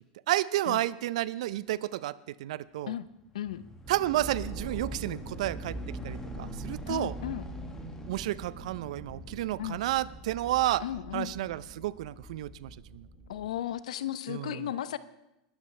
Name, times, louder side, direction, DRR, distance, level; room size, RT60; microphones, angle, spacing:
voice 1, 0.3-2.9 3.9-5.8 6.0-7.1 8.1-10.8 11.1-13.0 14.3-14.7, right 15 dB, 75° right, 19 dB, 0.5 m, -31 dB
sound 1, 3.1-11.7 12.3-12.4, left 1 dB, 15° left, 1.6 m, -47 dB
voice 2, 3.3-3.6 6.9-7.4 9.6-9.8 10.8-11.3 13.3-15.0, left 11 dB, 90° left, 15 dB, 0.7 m, -35 dB
sound 2, 3.8-13.6, right 1 dB, 20° right, 6.4 m, -43 dB
20.5 x 12.5 x 3.3 m, 0.91 s
supercardioid pair, 120°, 4 cm